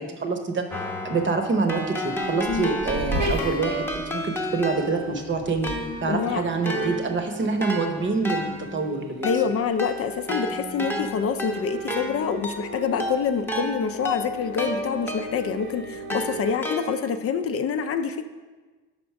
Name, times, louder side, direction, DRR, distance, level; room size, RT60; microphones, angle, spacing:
voice 1, 0.0-5.7 6.0-9.3, right 4 dB, 40° right, 5 dB, 0.9 m, -26 dB
Keyboard (musical), 0.7-5.2 5.6-15.6 16.1-17.3, equal, 5° left, 0.8 m, -32 dB
sound 1, 1.7-16.5, right 1 dB, 75° right, 1.4 m, -37 dB
voice 2, 6.1-6.4 9.2-18.3, left 6 dB, 50° left, 8 dB, 0.4 m, -26 dB
5.1 x 4.4 x 5.8 m, 1.3 s
cardioid pair, 90°, 30 cm